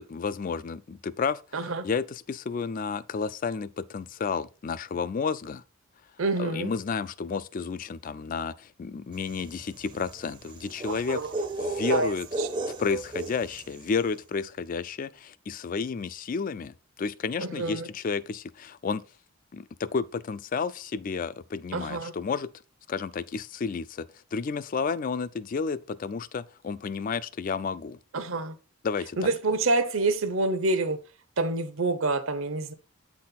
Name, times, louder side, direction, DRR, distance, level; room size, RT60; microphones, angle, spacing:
voice 1, 0.0-1.4 1.8-5.6 6.4-11.2 11.6-12.3 12.8-19.0 19.5-22.5 22.9-28.0 28.8-29.2, left 5 dB, 40° left, 0.3 m, -31 dB
voice 2, 1.5-1.8 6.2-6.7 10.9-11.3 11.6-12.5 12.9-13.0 17.4-17.9 21.7-22.1 28.1-28.6 29.2-31.0 31.4-32.7, right 3 dB, 65° right, 0.8 m, -27 dB
sound 1, 9.3-13.8, right 2 dB, 20° right, 0.5 m, -34 dB
8.4 x 4.2 x 4.0 m
head